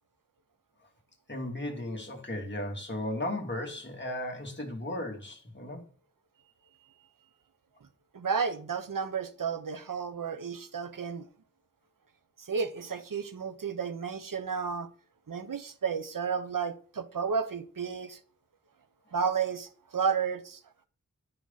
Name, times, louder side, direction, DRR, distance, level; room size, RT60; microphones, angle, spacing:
voice 1, 1.3-5.8, left 1 dB, 35° left, 3.0 m, -35 dB
voice 2, 8.1-11.3 12.4-14.9 15.3-18.2 19.1-20.6, right 6 dB, 80° right, 1.1 m, -32 dB
12.0 x 9.0 x 4.1 m
wide cardioid pair, 75°, 32 cm